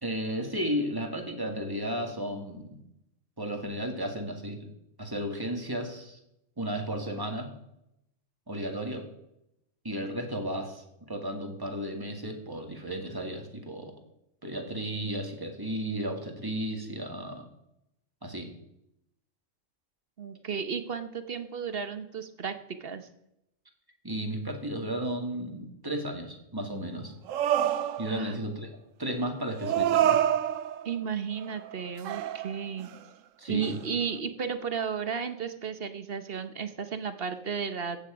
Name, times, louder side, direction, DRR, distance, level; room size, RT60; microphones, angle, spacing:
voice 1, 0.0-2.8 3.4-6.2 6.6-7.5 8.5-9.1 9.8-14.0 14.4-17.5 18.2-18.6 24.0-27.1 28.0-30.2 33.4-33.8, equal, 15° right, 3 dB, 1.9 m, -34 dB
voice 2, 20.2-22.5 22.8-23.1 28.1-28.4 30.8-32.9 33.5-38.0, right 6 dB, 50° right, 10 dB, 1.1 m, -33 dB
sound 1, 27.3-28.4 29.6-30.9 31.4-33.0 33.6-33.7, right 11 dB, 80° right, 1.0 m, -27 dB
14.0 x 8.7 x 5.0 m, 0.82 s
omnidirectional pair, 1.3 m